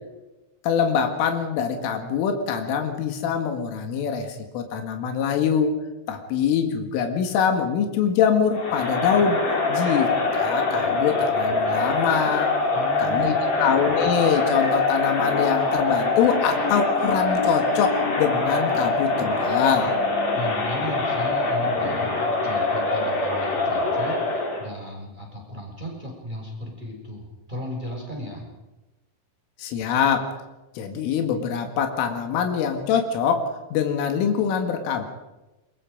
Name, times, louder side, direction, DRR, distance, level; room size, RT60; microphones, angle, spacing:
voice 1, 0.6-5.8 6.1-9.4 9.7-12.5 13.0-19.9 29.6-30.3 30.8-35.0, left 7 dB, 85° left, 5 dB, 4.5 m, -24 dB
Crowd, 8.5-24.7, left 3 dB, 35° left, 4.8 m, -24 dB
voice 2, 12.7-13.6 20.3-28.5, equal, 10° right, -1 dB, 5.7 m, -36 dB
23.0 x 23.0 x 5.2 m, 1.1 s
omnidirectional pair, 5.6 m